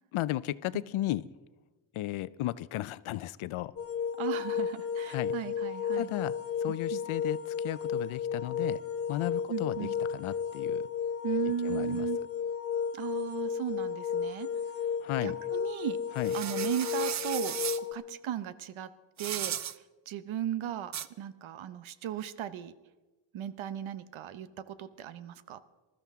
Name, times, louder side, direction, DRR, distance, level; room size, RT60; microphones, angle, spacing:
voice 1, 0.1-1.3 1.9-3.7 5.1-5.3 5.9-6.3 6.6-8.8 9.1-10.9 11.6-12.1 15.0-15.4 16.2-16.3, left 15 dB, 75° left, 17 dB, 0.6 m, -34 dB
sound 1, 3.8-17.9, left 7 dB, 30° left, 0.6 m, -33 dB
voice 2, 4.2-6.1 6.9-7.0 9.5-9.9 11.2-12.2 12.9-14.5 15.2-16.0 16.3-18.9 19.2-19.5 20.1-20.9 21.2-22.7 23.3-25.6, right 10 dB, 70° right, 14 dB, 0.9 m, -36 dB
sound 2, 16.2-17.8 19.2-19.8 20.9-21.1, right 10 dB, 35° right, 0.4 m, -35 dB
20.0 x 13.5 x 3.6 m, 1.2 s
cardioid pair, 115°, 50 cm